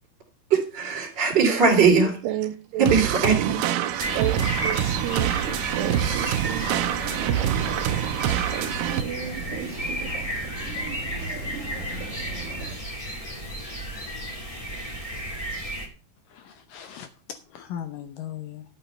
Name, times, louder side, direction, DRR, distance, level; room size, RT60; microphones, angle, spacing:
voice 1, 0.5-2.2 2.8-3.6, right 5 dB, 30° right, 3.2 m, -20 dB
voice 2, 2.2-2.9 3.3-8.1 8.5-10.1, right 12 dB, 90° right, 2.8 m, -33 dB
sound 1, 2.9-9.0, right 11 dB, 75° right, 2.1 m, -26 dB
sound 2, 4.0-15.9, equal, 10° left, 1.7 m, -33 dB
sound 3, 4.0-12.8, right 3 dB, 45° right, 2.2 m, -37 dB
voice 3, 16.3-18.7, left 9 dB, 75° left, 2.1 m, -38 dB
12.0 x 7.2 x 5.5 m
omnidirectional pair, 4.7 m